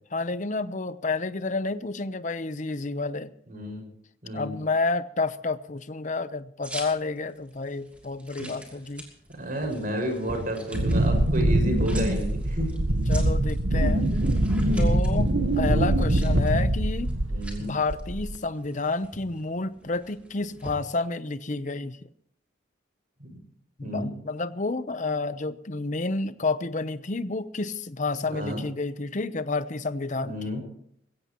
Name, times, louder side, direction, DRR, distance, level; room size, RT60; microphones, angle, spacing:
voice 1, 0.1-3.3 4.3-9.0 13.1-14.1 14.8-17.1 17.6-22.1 23.8-30.4, left 3 dB, 40° left, 13 dB, 0.8 m, -30 dB
voice 2, 3.5-3.9 4.2-4.6 9.3-12.8 14.1-14.2 14.5-14.9 17.3-17.7 23.2-23.4 23.8-24.1 28.3-28.6 30.2-30.6, right 1 dB, 45° right, 3 dB, 5.6 m, -31 dB
sound 1, 6.6-20.8, right 1 dB, 5° right, 2.8 m, -45 dB
Wind, 10.7-17.6 17.9-18.4, right 1 dB, 80° right, 1.2 m, -23 dB
21.5 x 16.5 x 3.0 m, 0.66 s
head